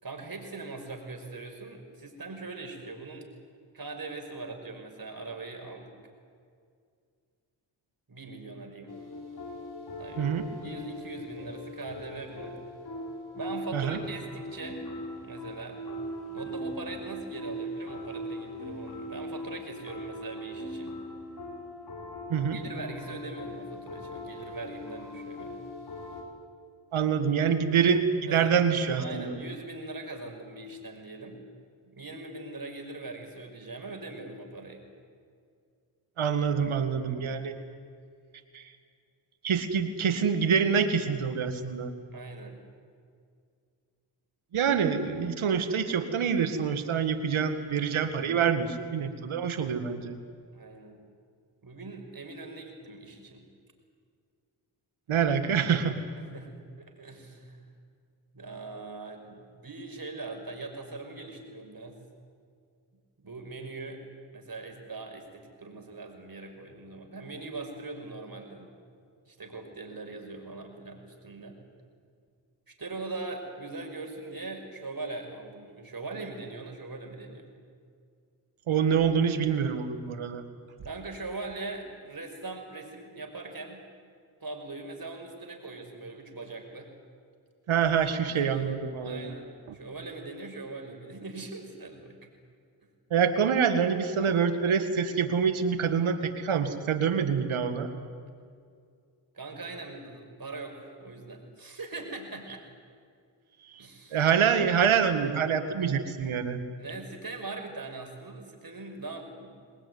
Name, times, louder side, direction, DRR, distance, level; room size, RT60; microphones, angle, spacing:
voice 1, 0.0-3.3 3.7-5.9 8.1-8.9 10.0-10.4 10.6-12.5 13.3-14.9 15.2-15.8 16.3-21.0 22.4-25.6 28.3-28.5 29.0-31.4 31.9-34.8 37.0-37.4 42.1-42.6 44.5-44.7 50.5-51.0 51.6-53.5 56.2-57.7 58.3-62.0 63.2-64.0 64.3-68.7 69.3-71.6 72.7-77.5 80.8-83.8 84.4-86.9 88.3-92.3 99.3-102.6 103.8-104.3 106.8-109.6, right 3 dB, 45° right, 3 dB, 5.8 m, -41 dB
sound 1, 8.9-26.2, equal, 50° left, 5.3 m, -40 dB
voice 2, 10.2-10.5 13.7-14.0 22.3-22.6 26.9-29.4 36.2-37.6 38.5-38.7 39.4-41.9 44.5-50.2 55.1-56.0 78.7-80.4 87.7-89.3 93.1-97.9 103.7-103.8 104.1-106.6, right 7 dB, 75° right, 8 dB, 2.0 m, -26 dB
22.5 x 19.5 x 9.6 m, 2.2 s
supercardioid pair, 45°, 49 cm